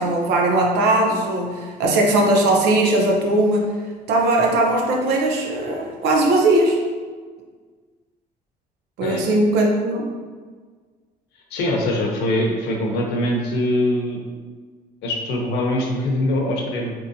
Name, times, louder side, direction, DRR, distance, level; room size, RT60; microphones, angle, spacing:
voice 1, 0.0-3.7 4.1-6.8 9.0-10.1, right 2 dB, 85° right, 0 dB, 0.7 m, -19 dB
voice 2, 11.5-14.2 15.0-16.9, left 1 dB, 80° left, 0 dB, 0.7 m, -22 dB
3.8 x 3.0 x 2.6 m, 1.5 s
cardioid pair, 110°, 17 cm